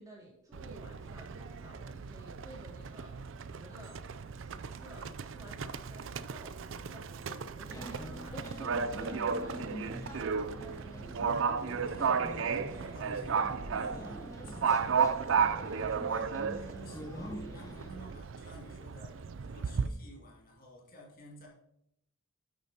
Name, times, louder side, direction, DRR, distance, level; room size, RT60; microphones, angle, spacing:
voice 1, 0.0-4.2 4.4-10.2, right 1 dB, 15° right, -2 dB, 2.2 m, -54 dB
Livestock farm animals working animals, 0.5-19.9, right 6 dB, 60° right, 0.4 m, -34 dB
sound 1, 7.7-17.9, equal, 15° left, 0.9 m, -45 dB
voice 2, 11.2-15.0 15.4-21.5, equal, 45° left, -2 dB, 2.3 m, -53 dB
9.8 x 8.4 x 2.9 m, 0.79 s
head